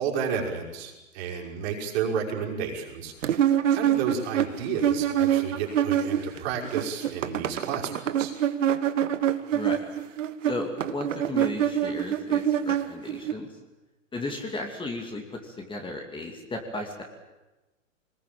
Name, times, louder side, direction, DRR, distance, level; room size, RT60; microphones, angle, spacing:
voice 1, 0.0-8.4, right 6 dB, 50° right, -1 dB, 5.6 m, -32 dB
sound 1, 3.2-6.4 6.6-13.3, right 10 dB, 70° right, 1.5 m, -25 dB
voice 2, 9.5-9.8 10.4-13.6 14.1-17.0, left 2 dB, 10° left, 3 dB, 2.9 m, -35 dB
23.0 x 20.5 x 8.9 m, 1.1 s
hypercardioid pair, 115°, 39 cm